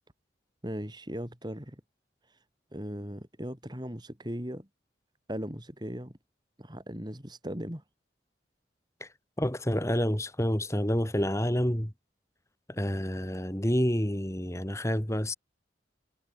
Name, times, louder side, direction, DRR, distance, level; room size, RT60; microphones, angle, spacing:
voice 1, 0.6-1.8 2.2-2.4 2.7-4.7 5.3-6.2 6.6-7.8, equal, 25° right, 4.2 m, -38 dB
voice 2, 9.4-11.9 12.7-15.3, equal, 15° left, 2.7 m, -28 dB
head